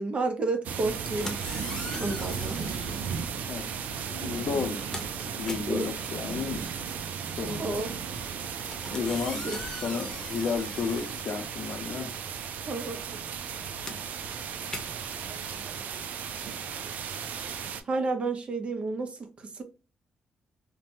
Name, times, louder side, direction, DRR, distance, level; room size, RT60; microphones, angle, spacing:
voice 1, 0.0-1.3 2.0-2.9 5.6-5.9 7.6-7.9 9.4-9.6 12.7-13.0 17.8-19.2 19.5-19.6, right 3 dB, 45° right, 0.7 m, -31 dB
sound 1, 0.6-17.8, right 7 dB, 80° right, 0.4 m, -35 dB
sound 2, 0.9-3.2 4.1-4.3 4.6-12.1 12.4-17.0, left 1 dB, 20° left, 0.8 m, -42 dB
voice 2, 4.1-5.0 5.4-6.6 7.4-7.8 8.9-9.5 9.8-12.1, left 5 dB, 70° left, 0.6 m, -32 dB
2.8 x 2.2 x 2.8 m
cardioid pair, 85°, 3 cm